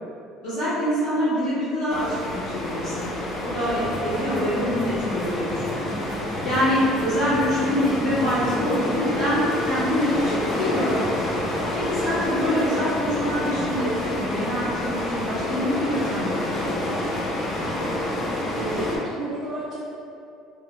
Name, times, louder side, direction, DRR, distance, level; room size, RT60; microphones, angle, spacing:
voice 1, 0.4-5.9 6.4-11.1 11.7-16.9, left 1 dB, 50° left, -18 dB, 1.5 m, -25 dB
sound 1, 1.9-19.0, left 1 dB, 30° left, 0.5 m, -28 dB
sound 2, 3.7-8.9, left 1 dB, 75° left, 0.8 m, -37 dB
voice 2, 18.6-19.8, right 1 dB, 40° right, -7 dB, 0.4 m, -30 dB
3.1 x 2.1 x 3.2 m, 2.5 s
cardioid pair, 160°, 0 cm